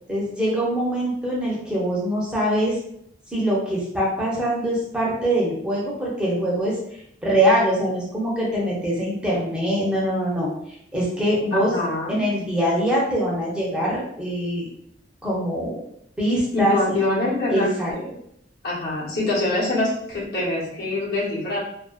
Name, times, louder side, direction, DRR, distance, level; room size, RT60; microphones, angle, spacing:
voice 1, 0.1-2.8 3.3-6.8 7.2-10.5 10.9-11.7 12.1-14.7 15.2-15.8 16.2-17.0 17.5-17.9, right 1 dB, 5° right, -6 dB, 0.6 m, -23 dB
voice 2, 11.5-12.2 16.5-18.1 18.6-21.6, left 2 dB, 60° left, -7 dB, 1.0 m, -24 dB
2.5 x 2.1 x 2.3 m, 0.71 s
head